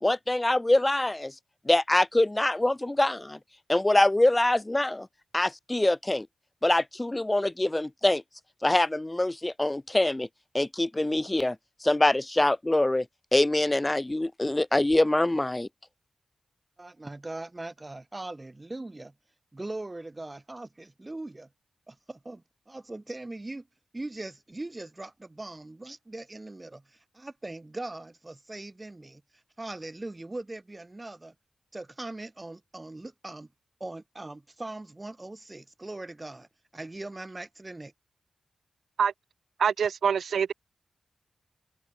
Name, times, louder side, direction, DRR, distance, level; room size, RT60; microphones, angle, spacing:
voice 1, 0.0-1.3 1.7-3.4 3.7-5.1 5.3-6.3 6.6-8.2 8.6-10.3 10.5-11.6 11.8-13.1 13.3-15.7, left 1 dB, 20° left, 0.4 m, -24 dB
voice 2, 16.8-19.1 19.5-21.5 21.9-23.7 23.9-29.2 29.6-31.3 31.7-33.5 33.8-36.5 36.7-37.9, right 2 dB, 30° right, 7.8 m, -40 dB
voice 3, 39.6-40.5, right 7 dB, 80° right, 0.7 m, -25 dB
cardioid pair, 45°, 0 cm